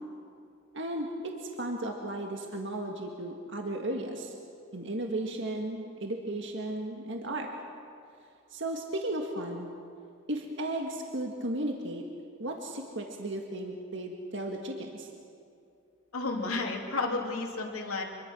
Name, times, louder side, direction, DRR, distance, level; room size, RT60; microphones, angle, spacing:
voice 1, 0.7-4.3 4.7-7.5 8.5-9.7 10.3-12.1 12.4-15.1, right 1 dB, 55° right, 2 dB, 1.8 m, -35 dB
voice 2, 16.1-18.0, left 3 dB, 85° left, 0 dB, 2.9 m, -32 dB
26.0 x 22.5 x 6.2 m, 2.5 s
head